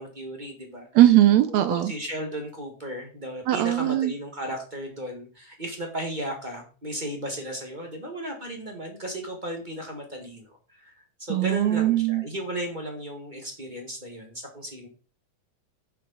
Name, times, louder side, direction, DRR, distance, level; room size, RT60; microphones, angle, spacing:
voice 1, 0.0-0.9 1.5-10.9 11.2-14.9, equal, 25° right, 2 dB, 1.0 m, -35 dB
voice 2, 0.9-1.9 3.5-4.1 11.3-12.2, right 13 dB, 80° right, 11 dB, 1.7 m, -20 dB
6.8 x 6.6 x 5.3 m, 0.36 s
omnidirectional pair, 3.5 m